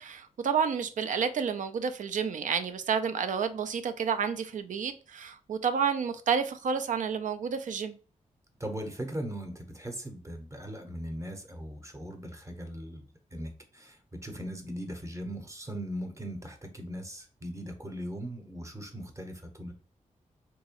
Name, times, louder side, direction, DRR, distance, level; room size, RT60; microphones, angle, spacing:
voice 1, 0.0-8.0, right 6 dB, 75° right, 0.5 m, -30 dB
voice 2, 8.6-13.0 13.3-14.0 14.2-19.7, equal, 20° right, 0.8 m, -39 dB
3.6 x 3.0 x 2.8 m
wide cardioid pair, 110°, 13 cm